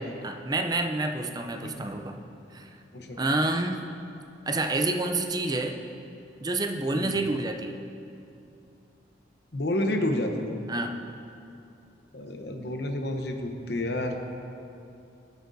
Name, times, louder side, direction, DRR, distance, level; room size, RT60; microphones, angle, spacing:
voice 1, 0.2-2.2 2.5-2.7 3.2-3.8 4.5-5.8 6.4-7.9 10.7-11.1, right 2 dB, 20° right, 5 dB, 0.5 m, -28 dB
voice 2, 9.5-10.6 12.1-14.2, left 1 dB, 60° left, 4 dB, 0.9 m, -30 dB
18.5 x 8.0 x 2.7 m, 2.7 s
head